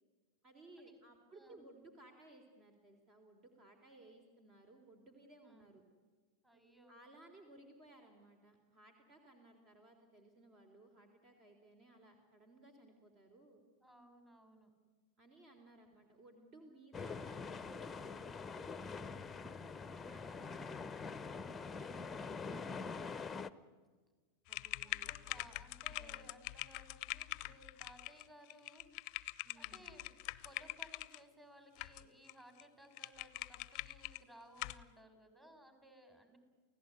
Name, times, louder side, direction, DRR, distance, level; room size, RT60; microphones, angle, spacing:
voice 1, 0.4-5.8 6.9-13.6 15.2-17.4 17.7-23.5 24.5-25.5 25.9-26.3 29.4-29.9, right 2 dB, 35° right, 5 dB, 3.7 m, -61 dB
voice 2, 6.4-7.0 13.8-14.7 20.3-20.4 24.8-28.9 29.5-30.1 30.4-36.4, equal, 15° right, 8 dB, 4.6 m, -60 dB
sound 1, 16.9-23.5, left 4 dB, 15° left, 0.9 m, -44 dB
sound 2, 24.5-31.2 31.8-32.3 32.6-32.7 33.0-34.2 34.6-34.8, left 18 dB, 45° left, 0.7 m, -44 dB
29.0 x 16.5 x 9.5 m, 1.5 s
figure-of-eight pair, 90°, 0 cm